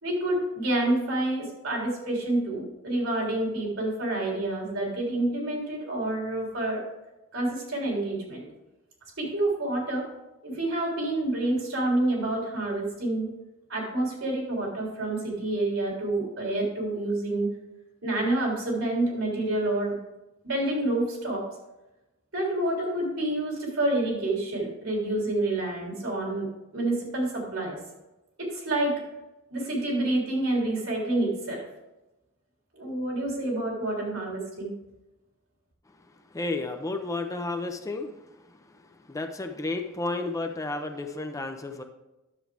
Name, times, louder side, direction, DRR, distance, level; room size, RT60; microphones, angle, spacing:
voice 1, 0.0-6.8 7.3-8.5 9.2-10.1 10.4-13.3 13.7-17.5 18.0-20.0 20.4-21.5 22.3-26.5 26.7-27.8 28.4-29.0 29.5-31.6 32.7-34.7, right 1 dB, 75° right, -2 dB, 3.4 m, -28 dB
voice 2, 36.3-38.1 39.1-41.8, left 2 dB, 15° left, 5 dB, 0.6 m, -32 dB
10.5 x 7.3 x 3.4 m, 1.0 s
head